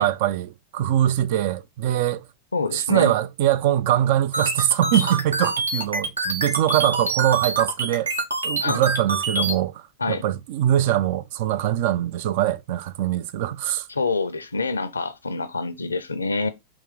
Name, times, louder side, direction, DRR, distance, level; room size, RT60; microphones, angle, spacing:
voice 1, 0.0-2.2 2.7-8.1 8.4-9.8 10.1-13.9, right 12 dB, 50° right, 0.4 m, -22 dB
voice 2, 2.5-3.1 8.6-8.8 10.0-10.2 13.9-16.5, left 3 dB, 75° left, 0.6 m, -26 dB
sound 1, 4.3-9.5, right 2 dB, 80° right, 1.1 m, -26 dB
4.6 x 3.0 x 3.6 m
figure-of-eight pair, 90°, 0 cm